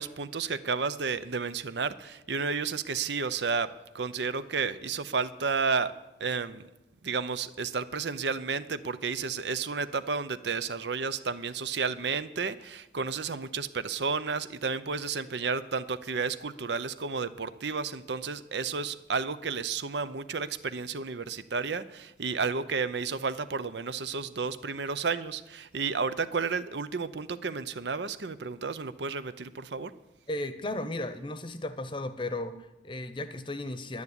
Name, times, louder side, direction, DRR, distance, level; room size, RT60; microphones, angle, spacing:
voice 1, 0.0-3.7 3.9-5.9 6.2-6.7 7.0-29.9, right 5 dB, 65° right, 13 dB, 0.7 m, -32 dB
voice 2, 30.3-34.0, left 1 dB, 25° left, 11 dB, 0.9 m, -35 dB
11.0 x 9.6 x 9.9 m, 0.93 s
head